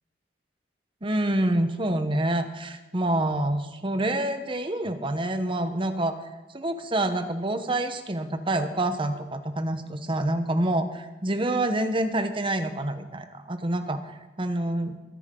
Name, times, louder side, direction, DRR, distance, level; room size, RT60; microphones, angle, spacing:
voice 1, 1.0-6.2 6.5-14.0 14.4-15.0, right 1 dB, 30° right, 8 dB, 1.0 m, -27 dB
22.5 x 11.0 x 3.8 m, 1.1 s
head